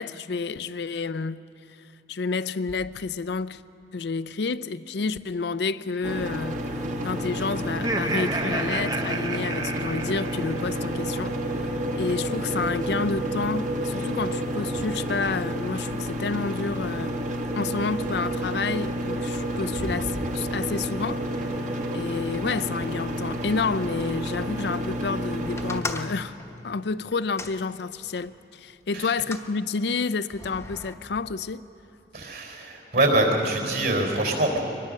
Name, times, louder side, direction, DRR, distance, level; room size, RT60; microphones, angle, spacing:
voice 1, 0.0-1.4 2.1-3.6 3.9-6.6 7.0-11.3 11.6-17.2 17.6-21.5 21.9-26.4 26.6-31.6, left 4 dB, 70° left, 0.5 m, -29 dB
sound 1, 6.0-25.8, right 1 dB, 45° right, 1.4 m, -30 dB
Laughter, 7.7-10.9, right 2 dB, 20° right, 0.7 m, -31 dB
sound 2, 25.6-28.3 29.0-29.5 30.3-30.9, left 3 dB, 15° left, 1.0 m, -38 dB
voice 2, 32.1-34.6, right 2 dB, 65° right, 4.3 m, -24 dB
23.0 x 20.5 x 6.6 m
head